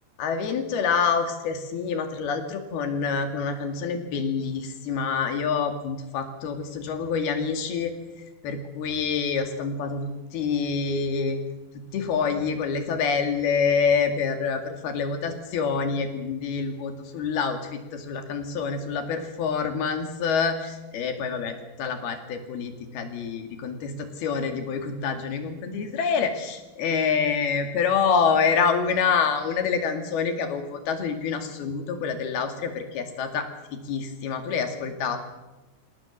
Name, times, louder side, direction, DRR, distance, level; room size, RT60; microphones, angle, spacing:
voice 1, 0.2-7.9 8.4-11.4 11.7-35.2, left 5 dB, 90° left, 6 dB, 4.2 m, -27 dB
26.5 x 18.0 x 7.2 m, 1.1 s
omnidirectional pair, 4.3 m